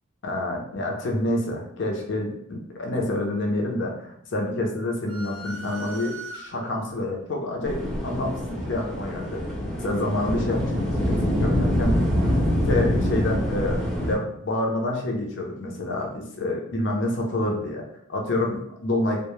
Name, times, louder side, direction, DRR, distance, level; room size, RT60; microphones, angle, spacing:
voice 1, 0.2-3.9 4.3-7.8 8.0-9.4 9.8-11.9 12.6-19.2, left 1 dB, 60° left, 0 dB, 0.5 m, -27 dB
sound 1, 5.1-6.9, right 2 dB, 60° right, 0.4 m, -39 dB
sound 2, 7.6-14.1, equal, ahead, 0.5 m, -25 dB
2.1 x 2.0 x 2.9 m, 0.72 s
head